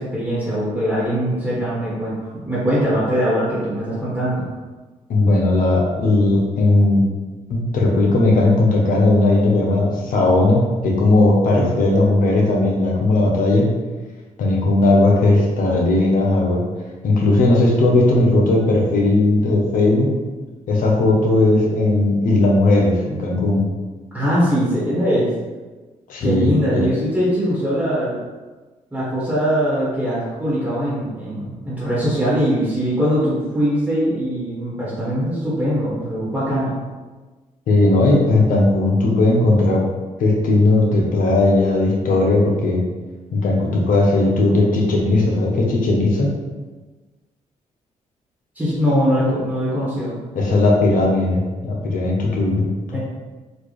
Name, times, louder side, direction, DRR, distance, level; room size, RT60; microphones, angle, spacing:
voice 1, 0.0-4.5 11.5-11.7 24.1-25.3 26.2-28.2 28.9-36.7 48.5-50.2 52.9-53.0, equal, 10° right, -9 dB, 1.3 m, -21 dB
voice 2, 5.1-7.0 7.5-13.7 14.4-16.6 17.0-20.1 20.7-23.6 26.1-26.9 37.7-39.8 40.2-42.8 43.3-46.3 50.3-52.7, left 2 dB, 75° left, -1 dB, 0.9 m, -17 dB
4.1 x 2.4 x 3.2 m, 1.3 s
cardioid pair, 80°, 14 cm